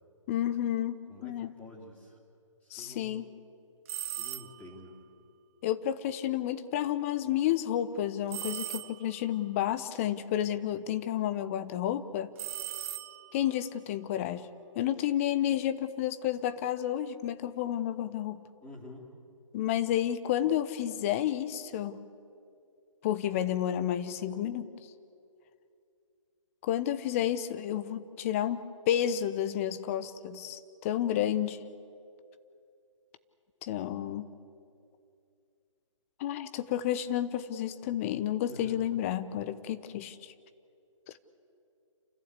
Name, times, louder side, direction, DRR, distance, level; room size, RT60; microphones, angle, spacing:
voice 1, 0.3-1.5 2.7-3.3 5.6-12.3 13.3-14.5 14.8-18.4 19.5-22.0 23.0-24.7 26.6-31.6 33.6-34.3 36.2-40.3, left 11 dB, 25° left, 12 dB, 0.8 m, -31 dB
voice 2, 1.1-2.2 2.6-3.2 4.2-5.0 18.6-19.1 38.5-38.9, left 2 dB, 10° left, -4 dB, 3.1 m, -48 dB
sound 1, 3.9-4.8 8.3-9.3 12.4-13.5, right 13 dB, 25° right, 0.5 m, -39 dB
28.5 x 15.0 x 8.3 m, 2.5 s
figure-of-eight pair, 135°, 17 cm